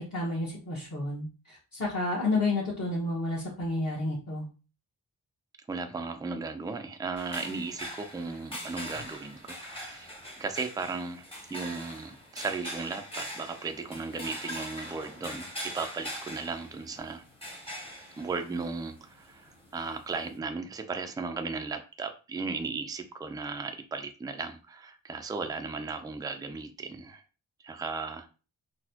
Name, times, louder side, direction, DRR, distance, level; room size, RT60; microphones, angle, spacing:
voice 1, 0.0-4.4, left 2 dB, 45° left, -6 dB, 1.1 m, -30 dB
voice 2, 5.7-10.1 10.4-15.5 15.7-17.2 18.2-27.2 27.6-28.3, right 4 dB, 10° right, 7 dB, 0.3 m, -36 dB
sound 1, 7.2-20.4, equal, 15° left, 0.9 m, -42 dB
4.0 x 2.1 x 2.8 m, 0.34 s
wide cardioid pair, 110°, 38 cm